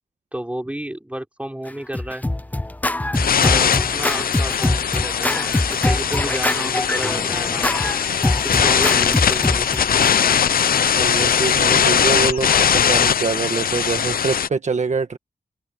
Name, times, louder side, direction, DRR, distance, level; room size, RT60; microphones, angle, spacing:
voice 1, 0.3-2.3 3.4-7.9 8.4-9.7, right 1 dB, 10° right, 4.2 m, -31 dB
Scratching (performance technique), 1.7-10.1, left 1 dB, 10° left, 0.6 m, -24 dB
sound 1, 3.1-14.5, left 8 dB, 70° left, 0.7 m, -20 dB
sound 2, 7.6-12.6, left 6 dB, 40° left, 1.1 m, -38 dB
voice 2, 10.9-15.2, right 4 dB, 50° right, 1.4 m, -24 dB
wide cardioid pair, 100°, 16 cm